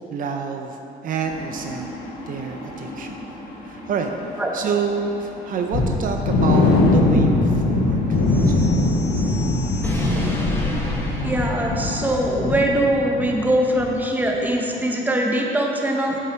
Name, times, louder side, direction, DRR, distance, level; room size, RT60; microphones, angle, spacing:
voice 1, 0.1-1.9 2.3-3.2 3.6-9.5, right 5 dB, 55° right, 4 dB, 0.6 m, -28 dB
sound 1, 1.2-12.2, left 2 dB, 50° left, 1.8 m, -38 dB
sound 2, 5.7-13.5 13.7-13.9 14.3-14.4, left 2 dB, 85° left, 1.1 m, -21 dB
sound 3, 8.3-12.6, left 1 dB, 15° left, 1.7 m, -28 dB
voice 2, 11.2-16.2, right 1 dB, 10° right, 0 dB, 1.2 m, -22 dB
8.3 x 7.8 x 4.4 m, 2.9 s
cardioid pair, 110°, 17 cm